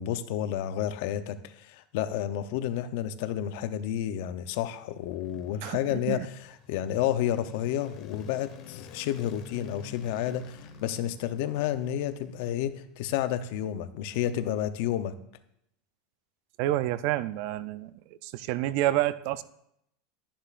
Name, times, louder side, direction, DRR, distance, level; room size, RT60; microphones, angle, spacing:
voice 1, 0.0-6.3 6.7-15.2, left 11 dB, 65° left, 11 dB, 0.7 m, -30 dB
sound 1, 4.7-13.0, left 6 dB, 40° left, 1.3 m, -50 dB
voice 2, 5.6-6.3 16.6-17.9 18.2-19.4, right 14 dB, 55° right, 16 dB, 0.4 m, -28 dB
11.5 x 10.0 x 2.5 m, 0.76 s
supercardioid pair, 150°, 0 cm